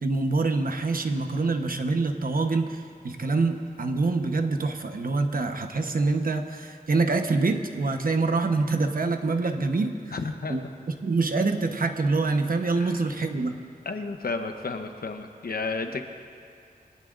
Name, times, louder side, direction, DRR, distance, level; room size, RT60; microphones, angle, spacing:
voice 1, 0.0-10.0 10.5-10.6 11.0-13.6, right 3 dB, 65° right, 5 dB, 1.1 m, -25 dB
voice 2, 10.1-10.7 12.8-13.0 13.8-16.0, left 3 dB, 75° left, 6 dB, 0.9 m, -32 dB
23.5 x 17.5 x 2.6 m, 2.4 s
wide cardioid pair, 95°, 16 cm